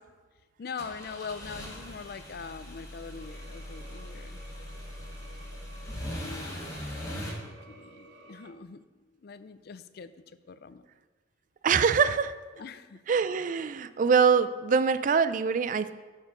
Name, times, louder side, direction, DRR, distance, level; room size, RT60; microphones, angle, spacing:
voice 1, 0.6-4.4 6.1-6.9 7.3-8.8 9.2-10.8 12.6-13.0, left 5 dB, 55° left, 12 dB, 0.4 m, -43 dB
sound 1, 0.8-7.3, left 1 dB, 20° left, 2.1 m, -40 dB
sound 2, 3.1-8.5, right 3 dB, 75° right, 1.0 m, -53 dB
voice 2, 11.6-12.3 13.1-15.9, right 6 dB, 45° right, 13 dB, 0.3 m, -24 dB
12.5 x 4.4 x 5.1 m, 1.3 s
head